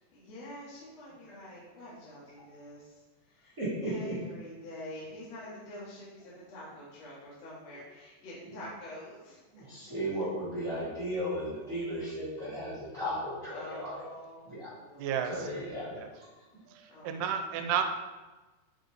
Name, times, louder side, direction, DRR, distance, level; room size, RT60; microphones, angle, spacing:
voice 1, 0.1-3.0 3.3-9.9 13.5-15.2 16.9-17.7, left 1 dB, 50° left, -7 dB, 2.5 m, -47 dB
voice 2, 3.6-4.1 8.5-8.6 9.5-14.1 14.5-14.7 15.2-16.3, equal, 25° right, -11 dB, 1.9 m, -35 dB
voice 3, 15.0-15.5 15.9-16.1 16.7-17.8, right 8 dB, 85° right, 6 dB, 2.6 m, -32 dB
8.4 x 5.1 x 4.1 m, 1.2 s
omnidirectional pair, 4.8 m